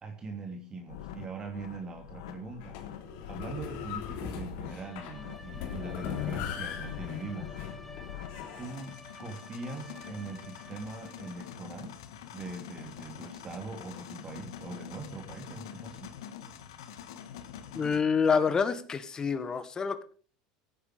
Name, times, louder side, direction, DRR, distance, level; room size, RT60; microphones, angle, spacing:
voice 1, 0.0-2.8 3.3-7.6 8.6-12.0 12.3-16.1, right 3 dB, 30° right, 4 dB, 2.9 m, -42 dB
sound 1, 0.9-18.0, left 10 dB, 85° left, 1.8 m, -46 dB
sound 2, 2.6-8.8, left 8 dB, 65° left, 3.2 m, -39 dB
Bowed string instrument, 4.6-11.7, left 1 dB, 5° left, 2.1 m, -52 dB
voice 2, 17.7-20.0, left 6 dB, 25° left, 12 dB, 1.7 m, -27 dB
16.5 x 9.9 x 5.1 m, 0.40 s
supercardioid pair, 100°, 3 cm